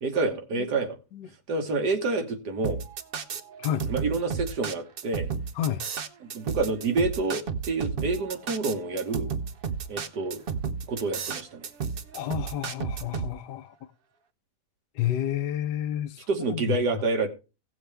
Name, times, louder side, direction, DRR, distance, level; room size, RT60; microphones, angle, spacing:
voice 1, 0.0-1.0 1.5-2.8 3.9-5.3 6.2-9.3 9.9-10.4 10.9-11.7 16.3-17.3, right 3 dB, 75° right, 2.0 m, -28 dB
sound 1, 2.6-13.3, right 6 dB, 55° right, 0.6 m, -32 dB
voice 2, 12.1-13.7 14.9-16.8, left 11 dB, 80° left, 1.3 m, -30 dB
16.0 x 7.1 x 3.4 m
omnidirectional pair, 1.8 m